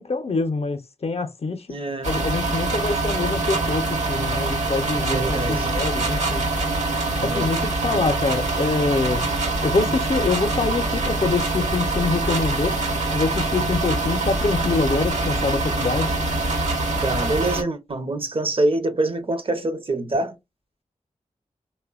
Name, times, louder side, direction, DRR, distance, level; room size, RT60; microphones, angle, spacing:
voice 1, 0.0-1.7 2.0-6.4 7.2-9.3 9.6-12.8 13.1-16.1, left 3 dB, 50° left, 0.5 m, -25 dB
voice 2, 1.7-2.1 4.9-5.7 7.2-7.5 17.0-20.4, right 2 dB, 45° right, 0.6 m, -25 dB
sound 1, 2.0-17.6, right 2 dB, 65° right, 1.0 m, -24 dB
3.2 x 2.1 x 2.3 m
cardioid pair, 50°, 13 cm